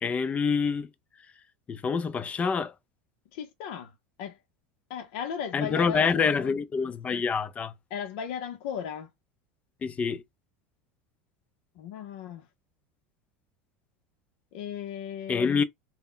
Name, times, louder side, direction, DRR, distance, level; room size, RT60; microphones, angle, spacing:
voice 1, 0.0-0.9 1.7-2.7 5.5-7.7 9.8-10.2 15.3-15.6, left 5 dB, 20° left, 0.4 m, -26 dB
voice 2, 3.3-4.4 4.9-6.6 7.9-9.1 11.8-12.5 14.5-15.6, left 8 dB, 70° left, 0.6 m, -36 dB
2.1 x 2.1 x 3.7 m
supercardioid pair, 125°, 6 cm